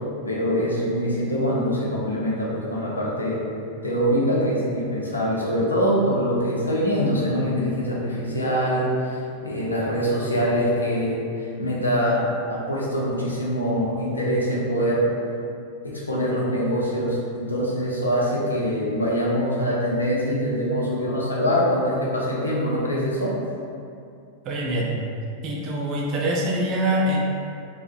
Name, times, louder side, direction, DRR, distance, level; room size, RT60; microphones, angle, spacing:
voice 1, 0.3-3.4 3.8-15.0 15.8-23.3, equal, 80° left, -5 dB, 0.5 m, -24 dB
voice 2, 24.4-24.9 25.4-27.2, right 1 dB, 35° right, -2 dB, 0.4 m, -24 dB
2.4 x 2.0 x 2.5 m, 2.4 s
figure-of-eight pair, 90°, 0 cm